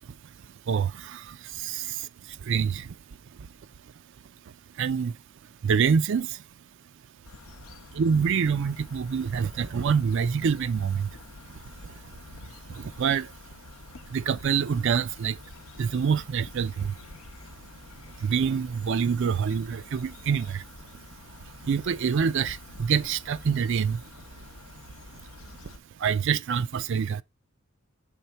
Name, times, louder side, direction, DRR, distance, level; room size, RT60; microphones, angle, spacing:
voice 1, 0.7-1.2 1.6-2.0 2.5-2.9 4.8-5.1 5.6-6.3 8.0-11.1 12.8-13.3 14.1-15.4 15.8-16.9 18.2-20.6 21.7-24.0 26.0-27.2, right 6 dB, 60° right, 0.4 m, -26 dB
sound 1, 7.2-25.8, left 2 dB, 85° left, 0.8 m, -47 dB
6.8 x 3.6 x 4.3 m
head